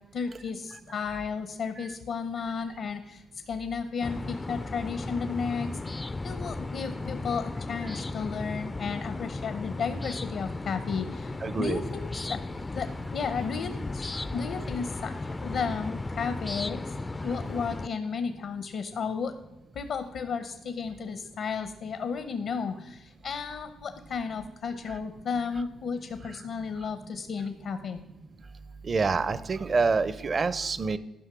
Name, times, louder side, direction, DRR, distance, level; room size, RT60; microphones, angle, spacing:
voice 1, 0.1-12.4 12.7-15.1 15.4-17.0 17.2-19.3 19.7-28.0, left 5 dB, 65° left, 9 dB, 0.7 m, -33 dB
sound 1, 4.0-17.9, left 2 dB, 20° left, 0.3 m, -35 dB
voice 2, 11.4-11.8 28.8-31.0, right 4 dB, 35° right, 16 dB, 0.6 m, -26 dB
11.5 x 5.4 x 6.0 m, 1.1 s
cardioid pair, 90°, 0 cm